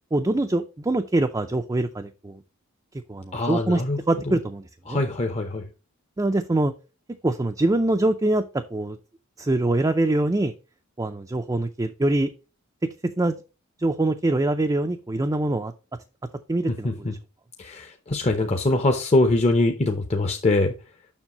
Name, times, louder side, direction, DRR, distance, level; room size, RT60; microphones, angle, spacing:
voice 1, 0.1-2.4 3.1-3.8 4.1-5.0 6.2-6.7 7.2-9.0 9.4-10.5 11.0-12.3 13.2-13.4 13.8-15.7 16.5-17.1, right 2 dB, 15° right, 5 dB, 0.4 m, -24 dB
voice 2, 3.3-4.0 4.9-5.6 16.7-17.1 17.6-20.7, left 2 dB, 30° left, 4 dB, 0.7 m, -23 dB
7.2 x 6.1 x 3.0 m, 0.31 s
head